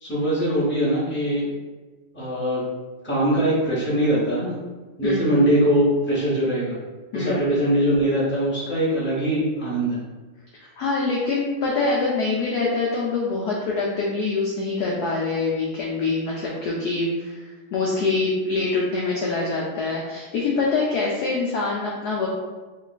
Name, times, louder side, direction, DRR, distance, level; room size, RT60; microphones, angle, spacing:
voice 1, 0.0-1.4 2.1-2.6 3.0-4.6 5.0-6.8 7.1-10.0, right 1 dB, 10° left, -9 dB, 0.5 m, -22 dB
voice 2, 5.0-5.4 7.1-7.4 10.8-17.5 17.7-22.3, left 3 dB, 90° left, -3 dB, 0.8 m, -25 dB
3.2 x 2.4 x 3.9 m, 1.3 s
omnidirectional pair, 2.3 m